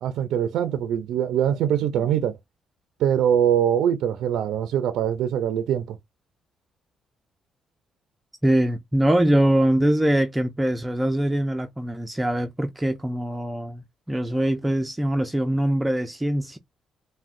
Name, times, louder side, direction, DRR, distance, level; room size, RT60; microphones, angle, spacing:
voice 1, 0.0-2.4 3.0-6.0, right 9 dB, 80° right, 0.3 m, -23 dB
voice 2, 8.4-16.6, right 1 dB, 10° right, 0.4 m, -23 dB
3.6 x 2.1 x 2.5 m
cardioid pair, 90°, 0 cm